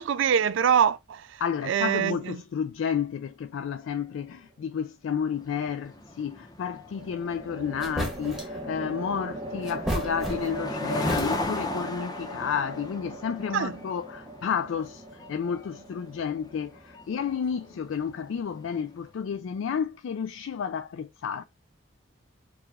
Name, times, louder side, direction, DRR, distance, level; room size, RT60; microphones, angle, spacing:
voice 1, 0.0-1.4 1.7-2.4 13.5-13.8, right 8 dB, 70° right, 0.3 m, -24 dB
voice 2, 1.4-21.4, left 7 dB, 75° left, 0.3 m, -31 dB
sound 1, 3.8-4.4 6.9-18.3, right 1 dB, 30° right, 0.9 m, -40 dB
sound 2, 5.4-18.9, left 1 dB, 20° left, 0.8 m, -37 dB
sound 3, 7.3-7.4 7.8-8.6 9.6-10.7 11.0-11.7, right 1 dB, ahead, 1.1 m, -33 dB
4.8 x 2.3 x 3.4 m
head